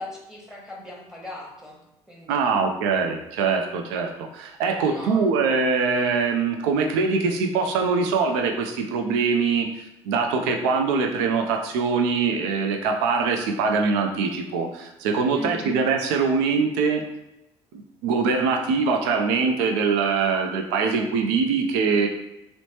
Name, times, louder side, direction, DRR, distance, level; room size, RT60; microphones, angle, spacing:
voice 1, 0.0-1.8 2.1-2.6 4.8-5.5 15.3-15.8, left 1 dB, 5° right, -2 dB, 1.0 m, -39 dB
voice 2, 2.3-9.7 10.0-17.0 18.0-22.1, right 5 dB, 75° right, 3 dB, 0.4 m, -23 dB
3.0 x 2.1 x 2.9 m, 0.89 s
hypercardioid pair, 60°, 14 cm